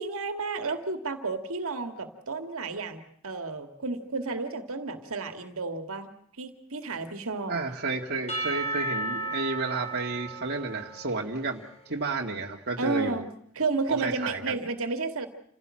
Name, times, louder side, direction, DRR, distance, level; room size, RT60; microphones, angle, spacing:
voice 1, 0.0-6.1 6.4-7.5 12.8-13.3 13.6-15.3, right 3 dB, 70° right, 7 dB, 2.3 m, -32 dB
voice 2, 7.5-13.2 13.9-14.6, right 3 dB, 50° right, 0 dB, 2.1 m, -32 dB
Percussion / Church bell, 8.3-11.9, right 2 dB, 30° left, 3.2 m, -34 dB
28.5 x 16.5 x 7.7 m, 0.69 s
head